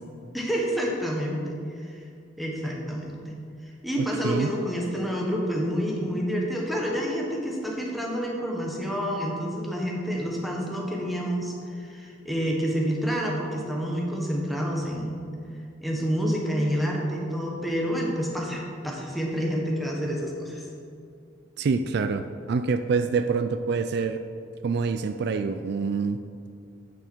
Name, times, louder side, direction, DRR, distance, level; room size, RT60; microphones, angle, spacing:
voice 1, 0.3-1.4 1.9-2.0 2.4-3.2 3.6-15.2 15.8-20.6, equal, ahead, -2 dB, 1.3 m, -28 dB
voice 2, 4.0-4.6 21.6-24.2 24.6-26.2, right 4 dB, 60° right, 10 dB, 0.3 m, -26 dB
9.2 x 6.9 x 4.5 m, 2.3 s
head